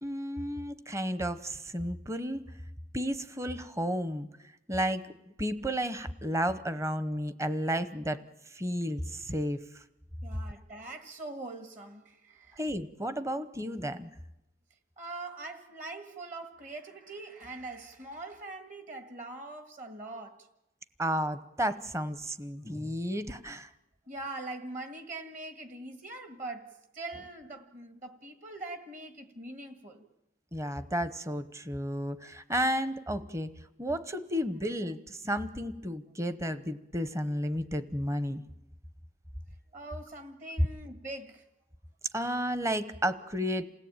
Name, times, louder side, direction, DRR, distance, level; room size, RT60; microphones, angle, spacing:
voice 1, 0.0-2.5 2.9-4.3 4.7-5.1 5.4-9.8 12.6-14.1 21.0-23.7 30.5-33.5 33.8-38.4 42.1-43.7, equal, 15° right, 0.9 m, -32 dB
voice 2, 10.2-12.6 15.0-20.5 24.1-30.1 39.7-41.5, right 2 dB, 40° right, 1.8 m, -42 dB
28.0 x 17.5 x 8.9 m
head